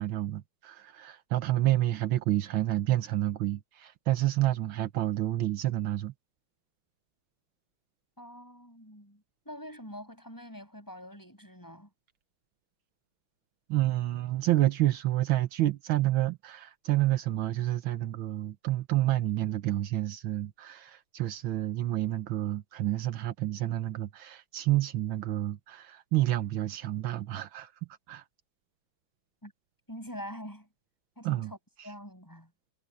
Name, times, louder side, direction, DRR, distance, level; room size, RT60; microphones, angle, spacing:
voice 1, 0.0-6.1 13.7-27.7 28.1-28.2 31.2-31.5, right 14 dB, 75° right, 1.7 m, -29 dB
voice 2, 8.2-11.9 29.4-29.5 29.9-30.7 31.2-31.6 31.8-32.5, equal, 10° left, 6.6 m, -45 dB
omnidirectional pair, 2.2 m